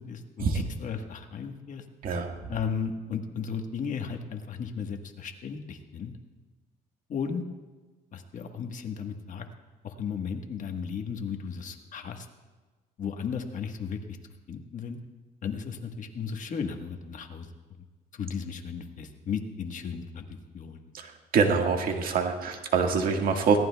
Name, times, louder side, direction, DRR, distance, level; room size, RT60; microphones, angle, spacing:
voice 1, 0.0-1.8 2.5-6.1 7.1-7.4 8.1-9.5 9.8-12.3 13.0-14.2 14.5-15.0 15.4-17.5 18.1-20.9, left 6 dB, 50° left, 5 dB, 1.4 m, -35 dB
voice 2, 21.3-23.6, right 5 dB, 60° right, 3 dB, 1.8 m, -25 dB
22.0 x 17.5 x 2.3 m, 1.3 s
cardioid pair, 110°, 17 cm